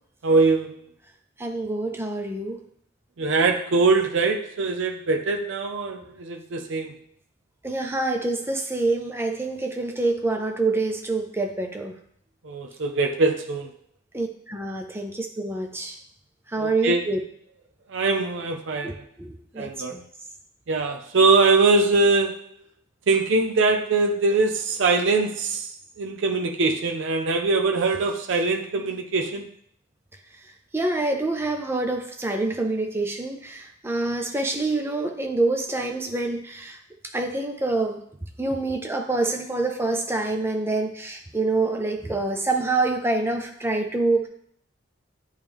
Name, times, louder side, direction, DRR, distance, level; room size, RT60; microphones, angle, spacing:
voice 1, 0.2-0.8 3.2-7.0 12.4-13.7 16.6-17.1 17.9-19.0 19.6-20.0 20.7-22.5 23.1-25.7 26.0-29.5, right 3 dB, 65° right, 3 dB, 0.5 m, -22 dB
voice 2, 1.4-2.6 7.6-12.0 14.1-16.0 16.5-17.2 18.8-20.0 30.7-36.8 37.1-38.0 38.4-44.3, right 2 dB, 10° right, 3 dB, 0.5 m, -26 dB
8.5 x 3.2 x 3.5 m, 0.66 s
head